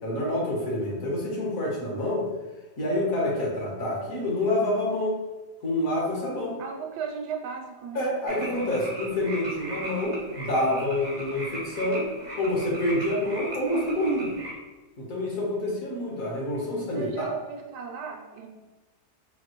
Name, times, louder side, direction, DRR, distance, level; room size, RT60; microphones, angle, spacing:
voice 1, 0.0-2.3 2.8-5.2 5.6-6.6 7.9-12.1 12.4-14.3 15.0-17.3, left 1 dB, 55° left, -4 dB, 1.3 m, -27 dB
voice 2, 6.6-8.1 16.9-18.5, right 6 dB, 75° right, 2 dB, 1.1 m, -35 dB
sound 1, 8.3-14.5, right 1 dB, 45° right, 0.5 m, -38 dB
4.6 x 2.7 x 2.9 m, 1.2 s
omnidirectional pair, 1.8 m